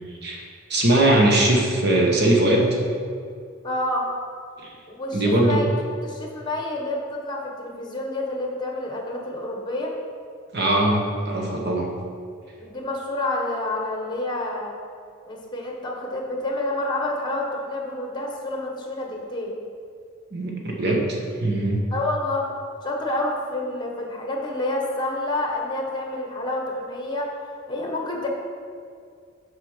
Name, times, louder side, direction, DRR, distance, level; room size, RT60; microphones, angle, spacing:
voice 1, 0.7-2.7 4.6-4.7 5.1-5.6 10.5-11.9 20.3-21.8, right 1 dB, 50° right, -1 dB, 1.1 m, -20 dB
voice 2, 3.6-4.1 4.9-5.7 6.0-9.9 12.6-14.7 15.3-19.6 21.9-22.5 22.8-27.3 27.7-28.3, left 2 dB, 20° left, 0 dB, 1.3 m, -28 dB
8.0 x 5.0 x 6.2 m, 2.3 s
head